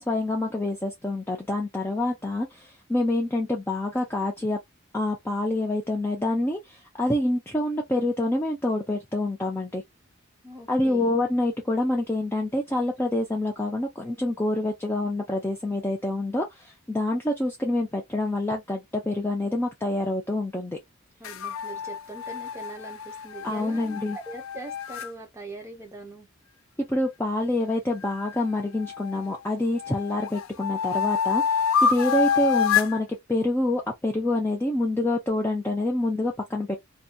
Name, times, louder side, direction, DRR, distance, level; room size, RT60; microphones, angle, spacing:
voice 1, 0.0-4.6 4.9-9.8 10.7-20.8 23.4-24.2 26.9-36.8, left 1 dB, 10° left, 0.4 m, -27 dB
voice 2, 10.4-11.2 21.2-26.3, right 2 dB, 15° right, 0.7 m, -42 dB
sound 1, 21.2-25.1 28.0-29.3 29.8-33.0, left 7 dB, 70° left, 0.4 m, -27 dB
2.6 x 2.2 x 2.3 m
head